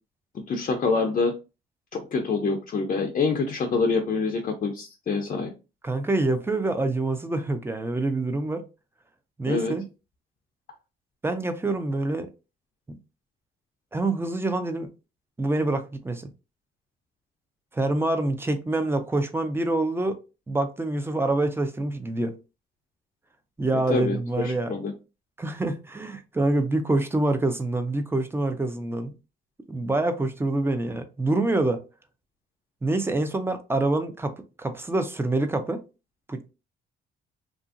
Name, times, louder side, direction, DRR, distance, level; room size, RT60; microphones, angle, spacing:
voice 1, 0.5-1.3 1.9-5.5 9.5-9.7 23.9-24.9, left 4 dB, 40° left, 0.5 m, -26 dB
voice 2, 5.8-8.6 9.4-9.8 11.2-12.3 12.9-13.0 13.9-14.9 15.4-16.3 17.7-20.2 20.5-22.3 23.6-24.7 25.4-29.1 29.7-31.8 32.8-35.8 36.3-36.5, right 2 dB, 10° right, 0.5 m, -26 dB
2.9 x 2.5 x 2.4 m
cardioid pair, 90°, 20 cm